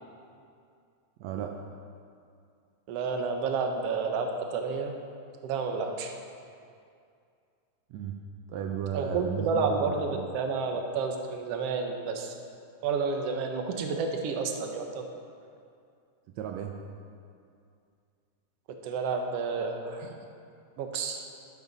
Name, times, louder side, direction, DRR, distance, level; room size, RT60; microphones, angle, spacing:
voice 1, 1.2-1.6 7.9-8.2 8.5-10.3 16.4-16.8, right 8 dB, 85° right, 3 dB, 1.5 m, -34 dB
voice 2, 2.9-4.9 5.4-6.1 8.9-12.3 12.8-15.1 18.8-20.1 20.8-21.2, right 4 dB, 65° right, 4 dB, 1.6 m, -30 dB
14.0 x 11.0 x 4.1 m, 2.4 s
omnidirectional pair, 3.8 m